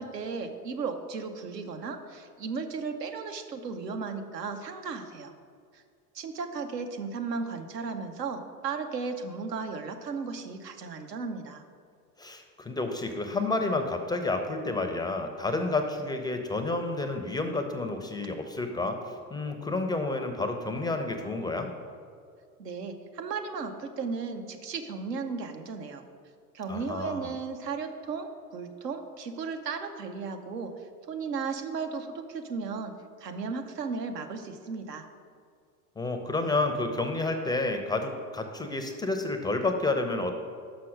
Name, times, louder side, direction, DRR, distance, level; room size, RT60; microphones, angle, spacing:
voice 1, 0.0-5.3 5.7-5.8 6.1-11.6 22.6-26.0 26.5-32.9 33.2-35.1, right 5 dB, 90° right, 6 dB, 0.8 m, -35 dB
voice 2, 12.2-21.7 26.7-27.3 36.0-40.3, left 2 dB, 10° left, 5 dB, 0.4 m, -30 dB
6.1 x 5.6 x 6.3 m, 2.2 s
hypercardioid pair, 85°, 47 cm